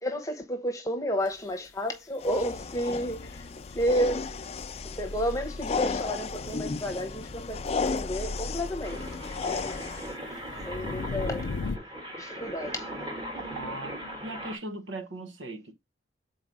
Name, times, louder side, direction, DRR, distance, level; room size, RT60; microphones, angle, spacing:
voice 1, 0.0-3.5 3.7-4.3 4.8-9.8 10.6-11.5 12.2-12.9, equal, 15° left, 0.9 m, -31 dB
sound 1, 1.3-1.4 4.6-4.7 7.4-8.4 9.2-9.6 9.9-11.8, left 4 dB, 90° left, 0.5 m, -35 dB
sound 2, 2.2-10.1, left 4 dB, 35° left, 0.4 m, -34 dB
sound 3, 8.8-14.6, equal, 25° right, 1.5 m, -39 dB
voice 2, 13.5-13.9 14.2-15.7, right 2 dB, 90° right, 1.1 m, -38 dB
4.7 x 4.0 x 5.2 m
head